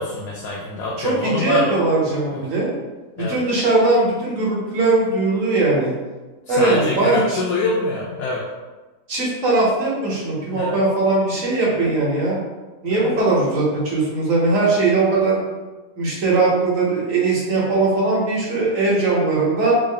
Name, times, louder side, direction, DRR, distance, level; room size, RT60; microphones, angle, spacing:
voice 1, 0.0-1.7 2.3-2.4 3.2-3.4 6.5-8.4 10.5-10.8 11.8-11.9 12.9-13.2, left 3 dB, 80° left, -3 dB, 1.0 m, -25 dB
voice 2, 1.0-2.7 3.2-5.9 6.5-7.4 9.1-12.4 12.8-15.4 16.0-19.7, right 3 dB, 65° right, -4 dB, 1.3 m, -19 dB
3.6 x 2.1 x 3.7 m, 1.2 s
omnidirectional pair, 1.5 m